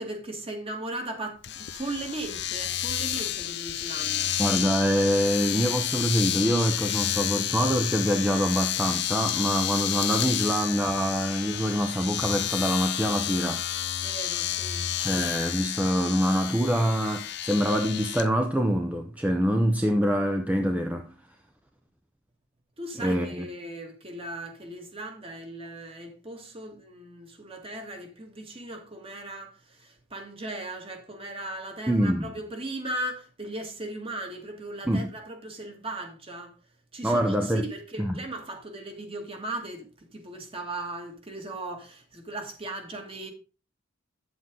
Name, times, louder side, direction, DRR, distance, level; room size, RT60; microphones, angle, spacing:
voice 1, 0.0-4.3 14.0-14.9 22.8-36.5 36.9-39.9 40.1-43.3, right 1 dB, 30° right, 2.0 m, -37 dB
Domestic sounds home sounds, 1.4-18.3, left 12 dB, 60° left, 0.6 m, -30 dB
voice 2, 4.4-13.6 15.0-21.1 23.0-23.5 31.9-32.3 34.9-35.1 37.0-37.6 38.0-38.1, equal, 10° right, 0.7 m, -25 dB
9.3 x 7.9 x 3.8 m
head